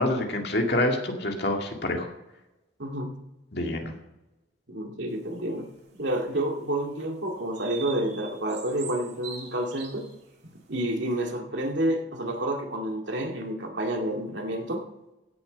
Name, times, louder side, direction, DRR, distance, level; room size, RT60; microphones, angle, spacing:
voice 1, 0.0-2.1 3.5-3.9, left 1 dB, 55° left, 2 dB, 2.2 m, -26 dB
voice 2, 2.8-3.1 4.7-5.7 6.0-10.1 10.7-14.8, right 1 dB, 75° right, 1 dB, 2.2 m, -29 dB
sound 1, 5.4-6.3 6.9-7.0 7.5-10.5, right 7 dB, 60° right, 2.8 m, -43 dB
16.5 x 7.3 x 5.3 m, 0.98 s
head